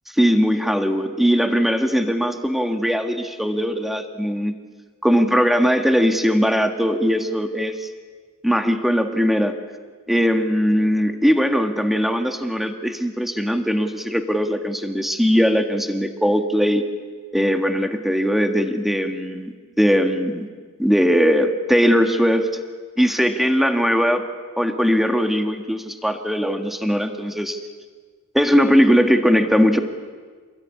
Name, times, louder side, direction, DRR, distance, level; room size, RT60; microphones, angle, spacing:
voice 1, 0.1-4.5 5.0-7.9 8.4-9.6 10.1-16.8 17.3-20.5 20.8-22.5 23.0-24.3 24.6-27.6 28.3-29.8, equal, ahead, 6 dB, 1.8 m, -20 dB
28.0 x 21.5 x 9.8 m, 1.5 s
head